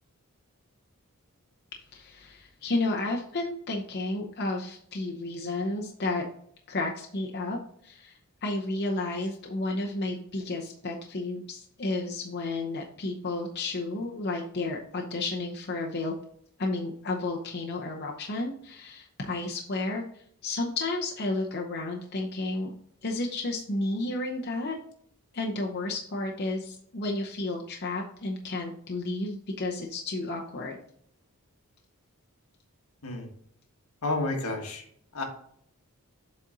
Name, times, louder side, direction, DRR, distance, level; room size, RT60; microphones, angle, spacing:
voice 1, 1.9-6.2 6.7-7.6 7.8-8.1 8.4-16.1 16.6-20.0 20.4-22.7 23.0-24.8 25.3-30.8, left 2 dB, 50° left, 0 dB, 0.8 m, -32 dB
voice 2, 34.0-34.9 35.1-35.2, left 2 dB, 85° left, 2 dB, 1.5 m, -30 dB
7.6 x 4.3 x 3.9 m, 0.65 s
head